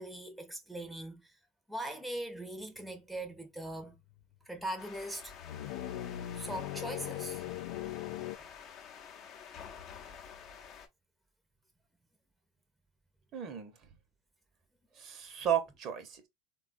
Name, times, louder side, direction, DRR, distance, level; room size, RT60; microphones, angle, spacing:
voice 1, 0.0-1.4 1.7-4.0 4.5-5.3 6.3-7.4 8.0-8.3, right 1 dB, 5° right, 0.7 m, -41 dB
sound 1, 3.3-3.4 3.8-4.4 5.2-8.4, left 13 dB, 70° left, 0.3 m, -40 dB
sound 2, 4.8-10.9, left 7 dB, 45° left, 0.7 m, -50 dB
voice 2, 13.3-13.7 15.0-16.3, right 9 dB, 45° right, 0.8 m, -34 dB
3.5 x 2.3 x 2.5 m
hypercardioid pair, 100°, 0 cm